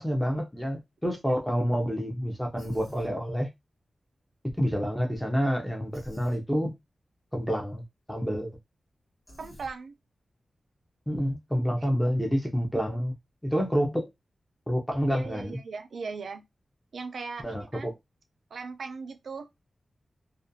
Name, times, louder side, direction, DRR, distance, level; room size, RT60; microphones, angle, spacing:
voice 1, 0.0-3.5 4.6-6.7 7.3-8.5 11.1-13.1 13.4-14.1 14.7-15.6 17.4-17.9, equal, 5° left, 0.5 m, -28 dB
Human voice, 2.6-3.1 5.9-6.4 9.3-9.7, equal, 45° left, 1.2 m, -48 dB
voice 2, 9.4-10.0 11.8-11.9 12.9-13.0 15.1-16.4 16.9-17.9 18.5-19.5, right 4 dB, 75° right, 0.4 m, -39 dB
2.4 x 2.2 x 2.5 m
wide cardioid pair, 130°, 0 cm